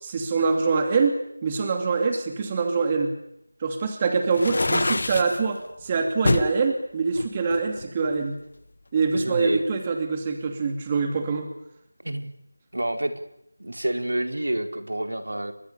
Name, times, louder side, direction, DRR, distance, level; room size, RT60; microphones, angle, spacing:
voice 1, 0.0-1.2 1.4-3.1 3.6-8.4 8.9-11.5, right 4 dB, 15° right, 5 dB, 2.6 m, -24 dB
sound 1, 4.3-5.4 6.2-6.5 7.1-8.2, left 2 dB, 50° left, 1.1 m, -25 dB
voice 2, 9.1-9.6 12.0-12.3 12.7-13.1 13.6-15.5, right 1 dB, 80° right, 6 dB, 4.7 m, -28 dB
30.0 x 24.5 x 7.0 m, 0.78 s
figure-of-eight pair, 175°, 0 cm